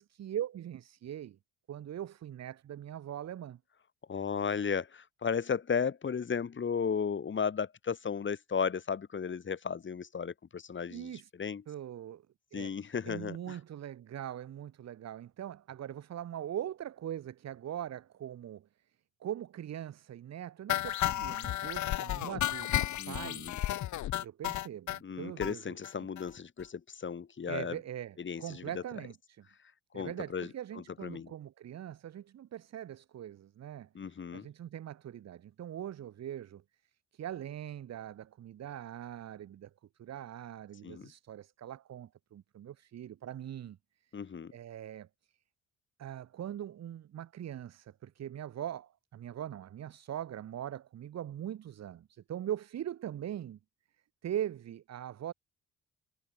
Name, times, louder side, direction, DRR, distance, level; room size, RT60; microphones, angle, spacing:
voice 1, 0.0-1.4 1.7-3.6 10.9-11.3 11.7-12.2 12.5-12.8 13.0-18.7 19.2-23.5 24.2-25.7 27.5-29.4 29.9-36.6 37.1-39.7 40.0-43.8 44.5-45.1 46.0-53.6 54.2-55.3, right 11 dB, 60° right, 1.5 m, -41 dB
voice 2, 4.1-11.1 11.4-11.6 12.5-13.6 23.0-23.6 25.0-27.8 28.2-28.8 29.9-31.3 33.9-34.5 40.8-41.1 44.1-44.5, left 6 dB, 40° left, 2.4 m, -35 dB
sound 1, 20.7-25.0 25.4-25.5 25.8-25.9 26.2-26.3 26.6-26.7, left 13 dB, 70° left, 1.2 m, -33 dB
cardioid pair, 90°, 30 cm